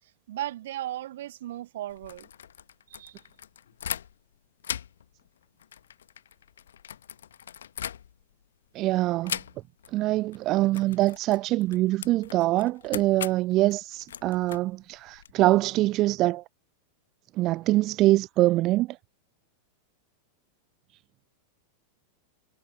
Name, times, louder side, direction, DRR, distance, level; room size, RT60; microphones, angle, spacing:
voice 1, 0.3-2.3 2.9-3.2, right 13 dB, 55° right, 1.2 m, -36 dB
sound 1, 1.9-4.3 4.6-8.4 9.2-9.9 10.2-10.4 10.7-15.3, left 9 dB, 65° left, 1.2 m, -39 dB
voice 2, 8.7-9.4 9.9-16.4 17.4-19.0, right 17 dB, 35° right, 0.4 m, -24 dB
figure-of-eight pair, 90°, 0 cm